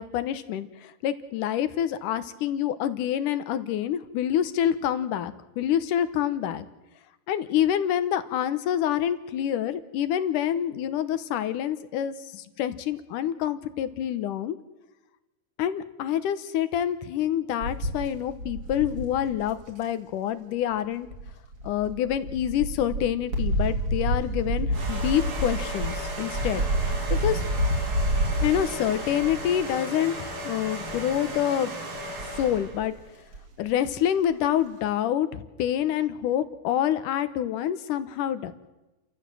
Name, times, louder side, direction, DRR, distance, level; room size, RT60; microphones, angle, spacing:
voice 1, 0.0-6.7 7.3-14.6 15.6-21.1 21.6-26.6 27.1-27.4 28.4-31.7 32.4-32.9 33.6-38.5, left 10 dB, 80° left, 12 dB, 2.6 m, -27 dB
sound 1, 17.6-19.8 21.1-29.7 30.0-30.3 30.6-31.1 32.0-32.8 33.3-33.4 33.7-33.8, right 1 dB, 45° right, 3.6 m, -29 dB
sound 2, 24.7-32.8, right 1 dB, 65° right, 5.6 m, -36 dB
30.0 x 14.0 x 7.7 m, 1.1 s
omnidirectional pair, 3.7 m